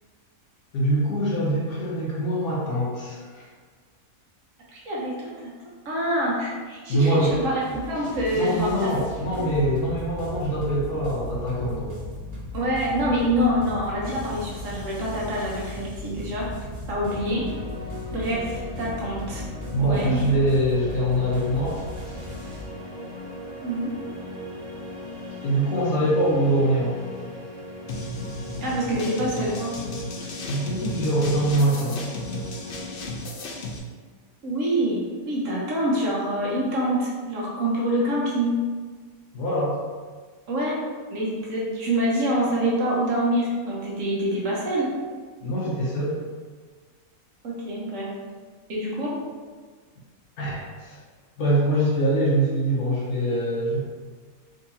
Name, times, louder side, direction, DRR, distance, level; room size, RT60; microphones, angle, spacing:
voice 1, 0.7-3.5 6.9-7.3 8.3-12.0 19.7-21.8 25.4-27.1 30.5-32.0 39.3-39.8 45.4-46.2 50.4-51.0 51.4-53.8, right 1 dB, 85° left, -6 dB, 1.3 m, -24 dB
voice 2, 4.7-5.3 5.8-8.9 9.4-9.5 12.5-16.5 16.9-17.4 18.1-19.4 19.8-20.2 23.6-23.9 28.6-29.7 34.4-38.6 40.5-40.8 41.1-44.9 47.4-48.1 48.7-49.1, equal, 65° right, -5 dB, 1.2 m, -26 dB
sound 1, 7.2-22.6, left 1 dB, 45° right, 1.2 m, -37 dB
sound 2, 17.0-33.1, left 1 dB, 90° right, 1.7 m, -38 dB
sound 3, 27.9-33.8, left 1 dB, 65° left, 0.5 m, -34 dB
3.9 x 2.7 x 2.7 m, 1.5 s
omnidirectional pair, 1.5 m